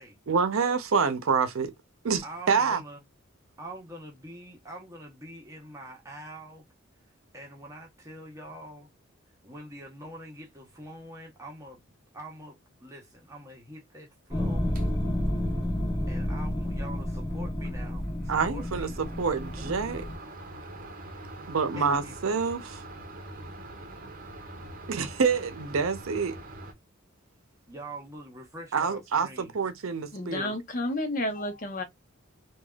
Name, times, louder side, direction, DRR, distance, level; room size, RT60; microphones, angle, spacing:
voice 1, 0.3-1.7 2.0-2.8 18.3-20.1 21.5-22.8 24.9-26.4 28.7-30.5, right 5 dB, 85° right, 0.6 m, -27 dB
voice 2, 2.2-3.0 3.6-6.7 7.3-8.9 9.4-11.8 12.1-14.7 16.1-19.0 19.6-19.7 21.8-22.2 27.7-29.5, right 1 dB, 15° right, 0.9 m, -44 dB
sound 1, 14.3-20.2, left 1 dB, 20° left, 1.1 m, -30 dB
sound 2, 14.7-14.8 17.6-17.7 18.0-26.7, right 2 dB, 40° right, 0.7 m, -44 dB
voice 3, 30.1-31.8, left 1 dB, 40° left, 0.8 m, -31 dB
3.3 x 2.3 x 2.3 m
head